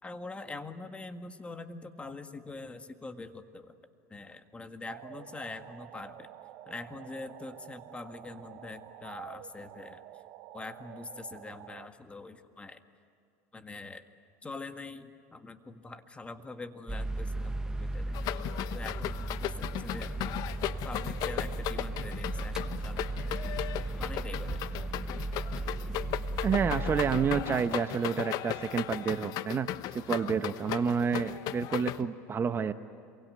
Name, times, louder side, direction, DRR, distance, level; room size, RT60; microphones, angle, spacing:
voice 1, 0.0-3.7 4.1-6.3 6.7-10.0 10.5-12.8 13.5-14.0 14.4-18.1 18.7-20.4 20.8-23.0 24.0-24.6, left 3 dB, 15° left, 7 dB, 1.8 m, -44 dB
sound 1, 4.9-11.9, right 14 dB, 60° right, 1.1 m, -49 dB
sound 2, 16.9-27.4, right 2 dB, 10° right, 1.1 m, -36 dB
sound 3, 18.1-32.0, left 13 dB, 55° left, 1.0 m, -36 dB
voice 2, 26.4-32.7, right 6 dB, 30° right, 10 dB, 0.9 m, -29 dB
27.0 x 23.5 x 9.3 m, 2.5 s
supercardioid pair, 105°, 8 cm